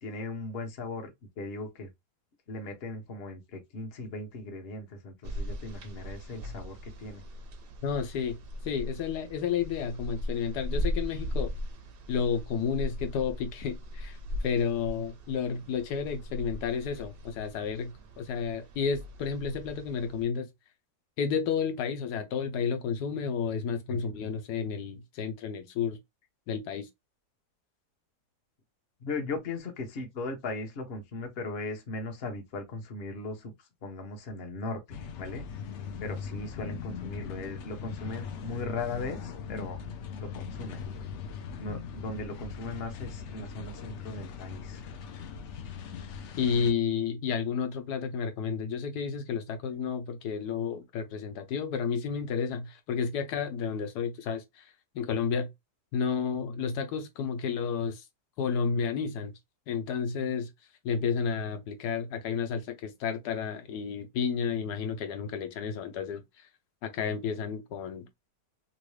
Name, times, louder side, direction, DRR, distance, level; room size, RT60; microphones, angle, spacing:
voice 1, 0.0-1.9 2.5-7.2 23.9-24.2 29.0-35.4 36.0-39.8 40.2-40.8 41.6-44.9, left 2 dB, 45° left, 0.9 m, -38 dB
sound 1, 5.2-20.2, equal, 60° right, 0.6 m, -38 dB
voice 2, 7.8-8.4 8.6-11.5 12.1-20.5 21.2-26.0 26.5-26.9 46.4-54.7 54.9-55.5 55.9-58.0 58.4-59.3 59.7-60.5 60.8-66.2 66.8-68.3, left 6 dB, 85° left, 1.2 m, -31 dB
sound 2, 34.9-46.7, left 6 dB, 70° left, 0.7 m, -40 dB
3.0 x 2.6 x 3.1 m
omnidirectional pair, 1.7 m